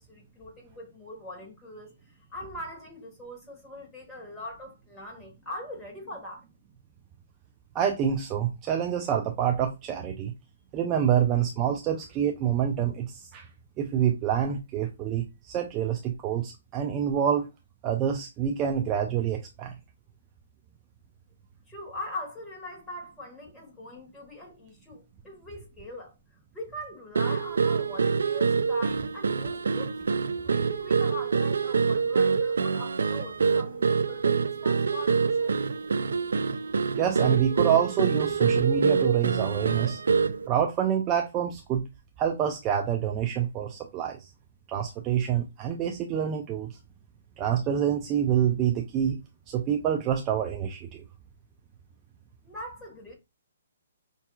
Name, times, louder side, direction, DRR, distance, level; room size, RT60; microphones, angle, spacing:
voice 1, 0.0-6.4 21.7-26.2 26.5-30.0 30.4-35.6 52.4-53.1, left 1 dB, 10° left, 1.5 m, -41 dB
voice 2, 7.7-10.3 10.7-13.5 13.8-17.5 17.8-19.7 36.9-40.0 40.5-41.8 42.2-44.3 44.7-46.8 47.4-49.2 49.5-51.0, right 9 dB, 25° right, 0.5 m, -27 dB
sound 1, 27.1-40.5, right 5 dB, 85° right, 0.3 m, -26 dB
5.5 x 2.7 x 2.3 m
hypercardioid pair, 155°, 0 cm